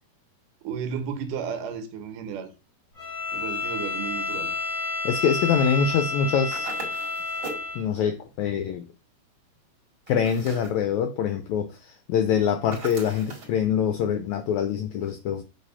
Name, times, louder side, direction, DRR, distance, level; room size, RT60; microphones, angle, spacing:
voice 1, 0.6-2.5 3.3-4.6, right 7 dB, 75° right, 2.4 m, -33 dB
Bowed string instrument, 3.0-7.8, left 3 dB, 40° left, 0.9 m, -30 dB
voice 2, 5.0-6.7 7.7-8.9 10.1-15.4, left 7 dB, 85° left, 1.6 m, -24 dB
sound 1, 6.5-7.7 10.1-10.8 12.7-13.6, right 3 dB, 35° right, 2.3 m, -39 dB
7.3 x 3.4 x 5.5 m
omnidirectional pair, 4.0 m